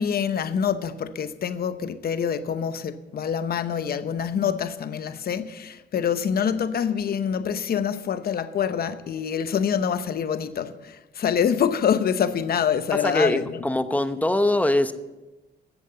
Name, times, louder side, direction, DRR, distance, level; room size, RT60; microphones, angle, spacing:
voice 1, 0.0-13.6, left 8 dB, 50° left, 0.8 m, -26 dB
voice 2, 13.0-14.9, left 1 dB, 5° left, 0.9 m, -22 dB
14.0 x 8.0 x 6.9 m
cardioid pair, 90°, 20 cm